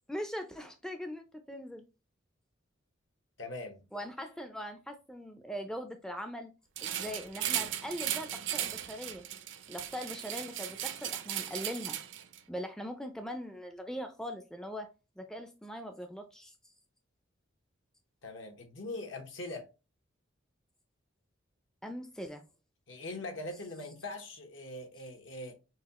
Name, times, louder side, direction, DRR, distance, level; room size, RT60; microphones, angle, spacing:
voice 1, 0.1-1.9 3.9-6.5 6.8-9.2 9.7-12.0 12.5-16.5 21.8-22.4, equal, 5° left, 0.3 m, -41 dB
voice 2, 3.4-3.9 18.2-19.7 22.9-25.5, left 2 dB, 80° left, 1.2 m, -41 dB
sound 1, 6.8-12.4, right 11 dB, 70° right, 0.5 m, -37 dB
6.2 x 2.3 x 2.9 m
head